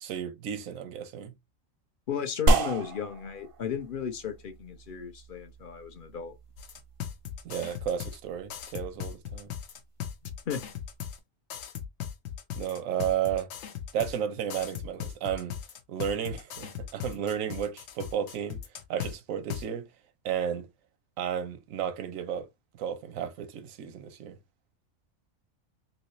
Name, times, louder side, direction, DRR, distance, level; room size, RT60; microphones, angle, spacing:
voice 1, 0.0-1.3 7.4-9.5 12.6-13.5 13.9-15.5 15.9-18.6 18.9-19.9 20.2-20.7 21.2-22.5 22.8-24.4, right 9 dB, 85° right, 1.1 m, -33 dB
voice 2, 2.1-6.3 10.5-10.6, left 7 dB, 55° left, 0.6 m, -35 dB
sound 1, 2.5-11.2, right 2 dB, 55° right, 0.7 m, -33 dB
sound 2, 6.6-8.2 8.5-11.2 11.5-14.2 14.5-19.1 19.5-19.6, left 10 dB, 80° left, 1.1 m, -38 dB
3.2 x 2.9 x 3.0 m
omnidirectional pair, 1.3 m